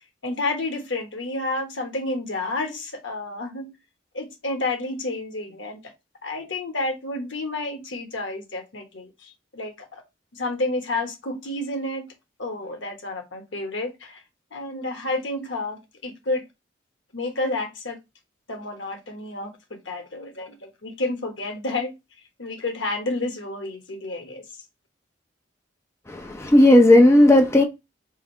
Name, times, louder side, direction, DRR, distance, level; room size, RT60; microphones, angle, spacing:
voice 1, 0.2-3.7 4.1-5.8 6.2-10.0 10.3-12.1 12.4-14.2 14.5-16.5 17.1-18.0 18.5-21.9 22.4-24.4, left 2 dB, 90° left, 1.2 m, -30 dB
voice 2, 26.1-27.6, left 1 dB, 15° left, 0.6 m, -14 dB
3.6 x 2.6 x 4.4 m
head